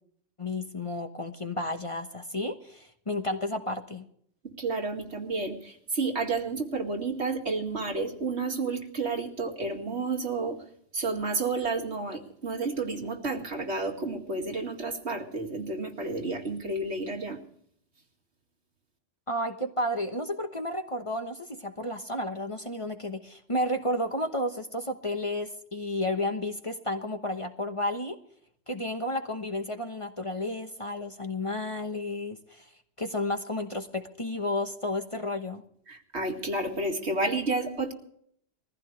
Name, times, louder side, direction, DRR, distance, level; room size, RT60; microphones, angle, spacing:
voice 1, 0.4-4.0 19.3-28.2 28.7-32.6 33.0-35.6, left 1 dB, 25° left, 5 dB, 1.2 m, -32 dB
voice 2, 4.6-10.6 10.9-17.4 35.9-37.9, right 3 dB, 65° right, 3 dB, 2.4 m, -31 dB
22.0 x 15.0 x 3.3 m, 0.65 s
omnidirectional pair, 1.2 m